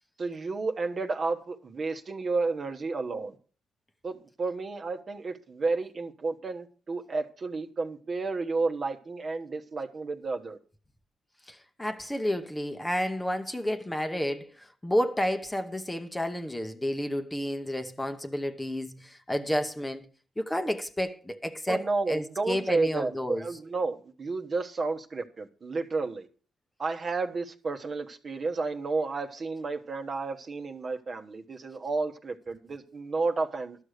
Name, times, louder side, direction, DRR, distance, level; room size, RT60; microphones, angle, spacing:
voice 1, 0.2-3.3 4.0-10.6 21.7-26.3 26.8-33.8, right 3 dB, 40° right, 1.1 m, -31 dB
voice 2, 11.5-20.0 20.4-23.5, equal, 10° left, 0.9 m, -31 dB
12.0 x 6.4 x 6.5 m
cardioid pair, 90°, 0 cm